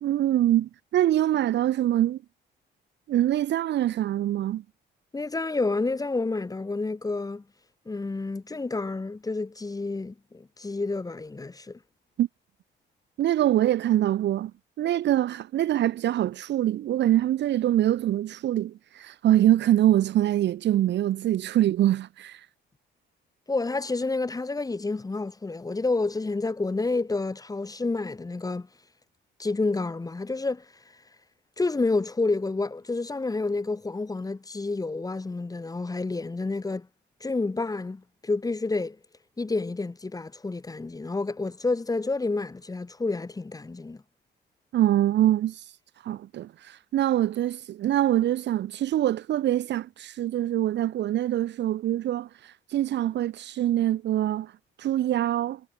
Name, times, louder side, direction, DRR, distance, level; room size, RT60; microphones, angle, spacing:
voice 1, 0.0-2.2 3.1-4.6 12.2-12.3 13.2-14.5 14.8-22.4 44.7-45.6 46.0-52.3 52.7-54.5 54.8-55.6, right 12 dB, 60° right, 0.6 m, -24 dB
voice 2, 5.1-7.4 7.9-11.8 23.5-28.7 29.4-30.6 31.6-36.9 37.2-39.0 39.4-44.0, left 3 dB, 20° left, 1.1 m, -29 dB
cardioid pair, 90°, 20 cm